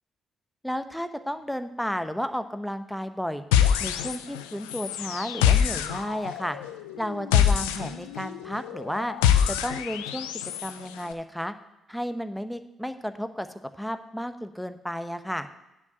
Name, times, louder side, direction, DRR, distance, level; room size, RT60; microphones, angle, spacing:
voice 1, 0.6-3.4 3.8-6.6 7.0-9.1 9.5-10.3 10.6-11.5 11.9-13.5 13.8-15.5, equal, ahead, 9 dB, 0.9 m, -32 dB
sound 1, 3.5-4.4 4.7-10.7, left 9 dB, 80° left, 0.5 m, -24 dB
9.6 x 4.8 x 7.8 m, 0.95 s
hypercardioid pair, 40°, 0 cm